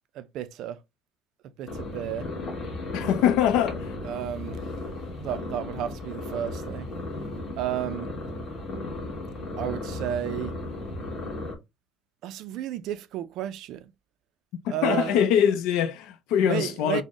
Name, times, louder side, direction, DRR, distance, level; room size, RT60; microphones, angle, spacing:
voice 1, 0.1-0.8 1.6-2.3 4.0-4.6 5.2-6.9 7.6-8.1 9.6-10.6 12.2-13.9 14.7-15.3 16.4-17.0, right 11 dB, 60° right, 0.3 m, -32 dB
sound 1, 1.7-11.5, left 2 dB, 30° left, 1.4 m, -35 dB
voice 2, 2.9-3.9 14.6-17.0, left 9 dB, 90° left, 0.4 m, -23 dB
3.7 x 2.0 x 3.6 m
cardioid pair, 170°, 0 cm